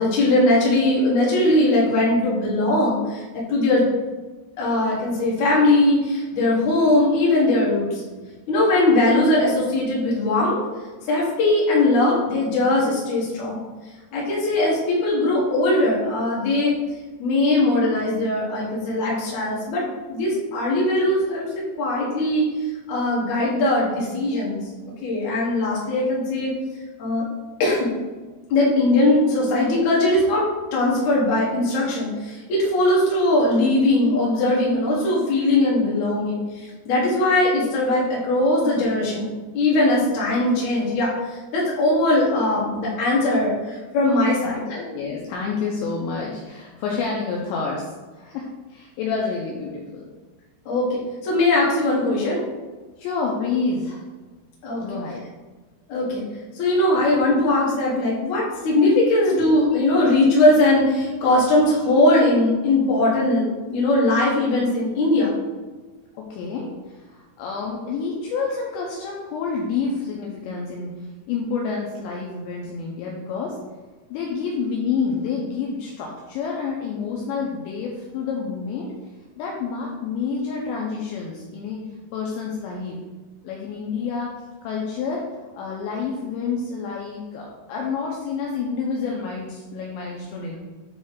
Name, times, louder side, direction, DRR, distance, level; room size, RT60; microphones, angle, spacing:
voice 1, 0.0-3.2 3.5-3.8 4.6-7.9 8.5-10.6 11.1-13.6 14.1-16.7 17.2-19.8 20.1-21.5 21.8-22.4 22.9-24.6 25.0-26.5 27.0-27.2 27.6-27.9 28.5-30.4 30.7-39.3 39.5-44.6 50.7-52.4 54.6-54.8 55.9-56.2 56.6-63.4 63.7-65.3, left 2 dB, 60° left, -5 dB, 2.1 m, -20 dB
voice 2, 44.7-50.1 53.0-54.0 54.8-55.2 66.1-71.0 71.3-73.6 74.1-78.9 79.4-81.8 82.1-83.0 83.4-84.3 84.6-85.3 85.5-90.6, left 5 dB, 85° left, -1 dB, 2.6 m, -28 dB
9.1 x 3.1 x 3.7 m, 1.3 s
omnidirectional pair, 5.8 m